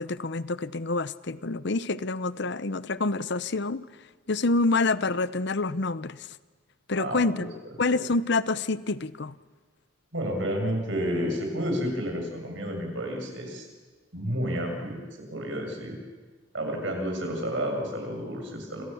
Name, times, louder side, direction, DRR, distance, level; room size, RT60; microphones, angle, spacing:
voice 1, 0.0-3.9 4.3-6.4 6.9-7.5 7.8-9.3, left 3 dB, 60° left, 16 dB, 0.8 m, -27 dB
voice 2, 7.0-7.4 7.9-8.0 10.1-13.6 14.1-16.0 16.5-18.8, equal, 65° right, 2 dB, 7.4 m, -31 dB
28.5 x 27.5 x 7.2 m, 1.4 s
head